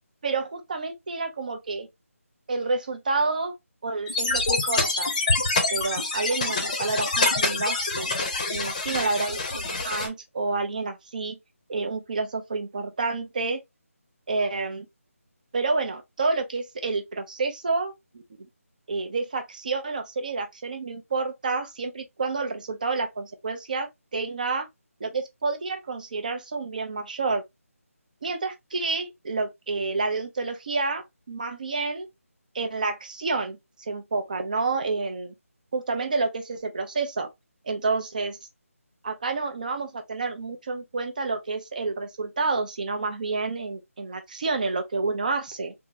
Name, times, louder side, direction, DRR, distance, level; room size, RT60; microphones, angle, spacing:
voice 1, 0.2-1.9 2.5-3.5 3.8-5.1 5.7-8.1 8.5-11.4 11.7-13.6 14.3-14.9 15.5-18.2 18.9-24.7 25.0-27.4 28.2-32.1 32.5-35.3 35.7-37.3 37.6-38.4 39.0-45.7, right 3 dB, 35° right, 0.6 m, -29 dB
sound 1, 4.1-10.1, left 3 dB, 30° left, 0.7 m, -26 dB
3.5 x 2.1 x 2.7 m
figure-of-eight pair, 170°, 8 cm